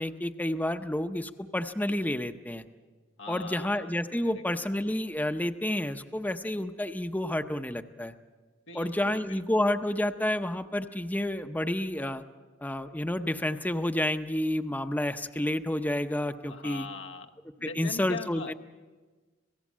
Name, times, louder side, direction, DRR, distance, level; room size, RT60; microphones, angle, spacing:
voice 1, 0.0-2.6 3.3-8.1 8.7-12.2 12.6-16.9 17.6-18.5, left 1 dB, 10° left, 8 dB, 0.7 m, -30 dB
voice 2, 3.2-3.9 4.2-4.4 8.7-9.4 16.5-17.3 17.6-18.5, left 4 dB, 90° left, 4 dB, 1.2 m, -41 dB
26.5 x 17.5 x 7.4 m, 1.3 s
head